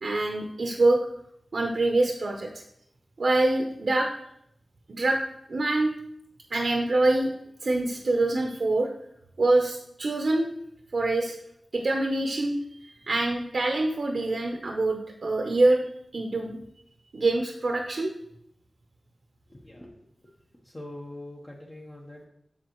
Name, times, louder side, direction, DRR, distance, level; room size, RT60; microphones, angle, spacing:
voice 1, 0.0-1.0 1.5-2.5 3.2-4.1 5.0-5.2 5.5-5.9 6.5-7.3 7.6-8.9 9.4-10.5 10.9-11.4 11.7-12.6 13.1-15.8 16.1-16.6 17.1-18.1, right 2 dB, 70° right, 1 dB, 0.8 m, -24 dB
voice 2, 19.5-20.0 20.6-22.2, left 1 dB, 25° left, -3 dB, 1.0 m, -43 dB
7.6 x 6.5 x 3.1 m, 0.75 s
wide cardioid pair, 90°, 0 cm